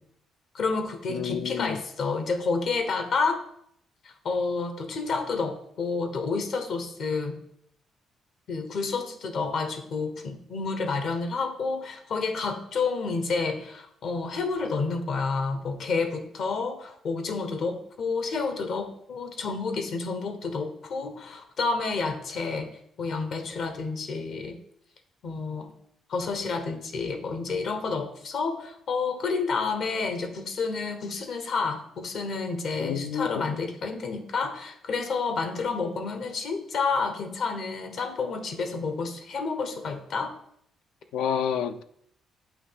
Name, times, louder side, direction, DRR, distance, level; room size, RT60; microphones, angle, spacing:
voice 1, 0.5-3.4 4.2-7.4 8.5-22.7 23.0-24.6 25.2-25.7 26.1-40.3, left 4 dB, 65° left, 1.0 m, -29 dB
voice 2, 1.1-1.8 32.8-33.5 41.1-41.8, left 8 dB, 85° left, 0.4 m, -29 dB
8.2 x 3.0 x 5.6 m
cardioid pair, 90°, 0 cm